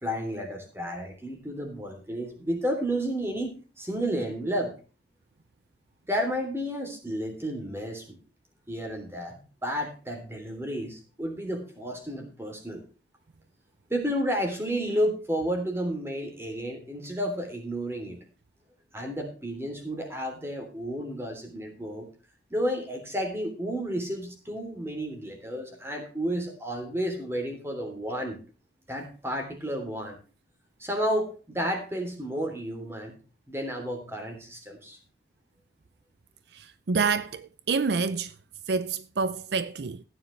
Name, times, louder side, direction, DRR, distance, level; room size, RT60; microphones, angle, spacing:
voice 1, 0.0-4.7 6.1-8.2 8.7-12.8 13.9-18.2 18.9-22.1 22.5-28.4 28.9-30.2 30.8-33.1 33.5-35.0, equal, 15° right, 3.2 m, -31 dB
voice 2, 36.5-38.3 38.7-40.0, right 4 dB, 65° right, 0.5 m, -28 dB
15.0 x 9.5 x 3.3 m
head